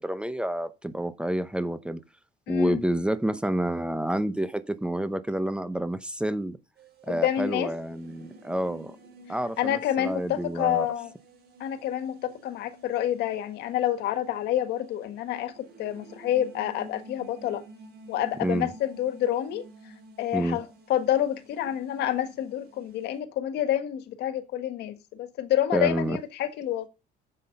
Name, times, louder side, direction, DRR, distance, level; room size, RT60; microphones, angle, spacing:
voice 1, 0.0-2.0 2.5-6.6 7.1-8.9 9.3-10.9 18.4-18.7 20.3-20.6 25.7-26.2, right 1 dB, 5° right, 0.8 m, -29 dB
voice 2, 2.5-2.8 7.1-7.7 9.6-11.1 11.6-17.6 18.1-19.6 20.2-26.9, left 11 dB, 80° left, 1.7 m, -28 dB
sound 1, 6.8-23.2, right 2 dB, 70° right, 5.5 m, -51 dB
10.0 x 7.8 x 5.3 m
cardioid pair, 110°, 17 cm